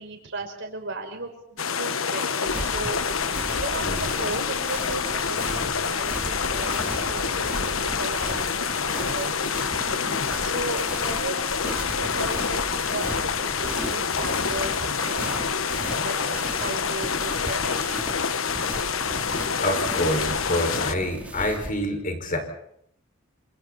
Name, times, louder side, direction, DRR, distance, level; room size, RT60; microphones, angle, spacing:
voice 1, 0.0-3.0 3.5-9.8 10.4-18.1, right 2 dB, 65° right, 3 dB, 5.6 m, -36 dB
sound 1, 1.6-21.0, left 6 dB, 90° left, 1.3 m, -27 dB
sound 2, 2.4-21.7, right 1 dB, 5° right, 3.3 m, -37 dB
voice 2, 19.6-22.4, left 1 dB, 45° left, 5 dB, 5.4 m, -27 dB
28.0 x 27.0 x 4.2 m, 0.71 s
head